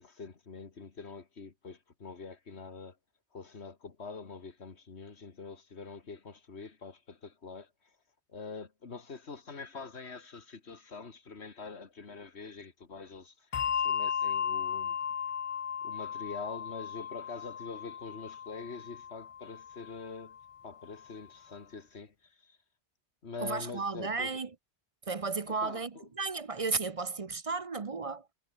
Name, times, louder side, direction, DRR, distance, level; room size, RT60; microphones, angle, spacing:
voice 1, 0.0-3.0 3.3-7.7 8.3-13.5 13.7-15.0 15.8-20.4 20.6-22.6 23.2-24.4 25.5-26.1, left 4 dB, 70° left, 2.2 m, -45 dB
Bell, 13.5-20.4, left 8 dB, 50° left, 0.4 m, -35 dB
voice 2, 23.4-24.5 25.1-28.3, right 4 dB, 35° right, 0.8 m, -34 dB
omnidirectional pair, 1.1 m